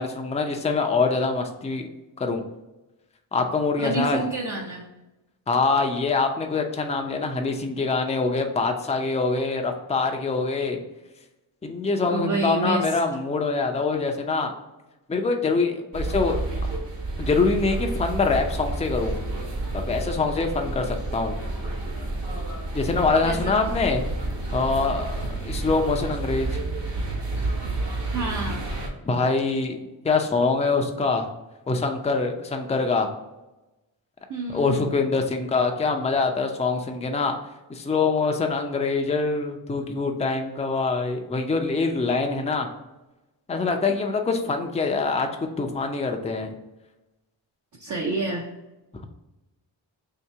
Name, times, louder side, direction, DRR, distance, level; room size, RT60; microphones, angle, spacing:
voice 1, 0.0-1.9 2.2-2.4 3.3-4.2 5.5-10.8 11.6-14.5 15.1-16.4 17.2-19.2 19.7-21.3 22.7-24.0 24.5-26.5 29.0-31.2 31.7-33.1 34.5-37.4 37.7-42.7 43.5-46.5, left 4 dB, 15° left, 3 dB, 0.4 m, -24 dB
voice 2, 3.8-4.9 12.1-13.0 23.2-23.7 28.1-28.7 34.3-35.0 47.8-48.5, right 2 dB, 40° right, -1 dB, 0.6 m, -29 dB
sound 1, 15.9-28.9, right 2 dB, 60° right, 1.3 m, -30 dB
3.2 x 2.8 x 4.5 m, 1.0 s
wide cardioid pair, 100°, 47 cm